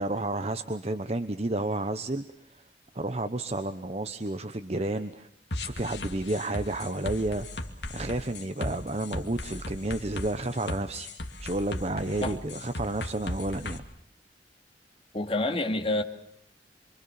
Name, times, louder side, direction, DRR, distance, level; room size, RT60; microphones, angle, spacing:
voice 1, 0.0-2.2 2.5-2.6 2.9-5.3 5.6-11.1 11.4-13.8, right 2 dB, 35° right, 1.0 m, -31 dB
sound 1, 5.5-13.8, left 1 dB, 75° left, 2.4 m, -36 dB
voice 2, 15.1-16.0, left 2 dB, 30° left, 2.5 m, -27 dB
27.0 x 24.5 x 7.1 m
head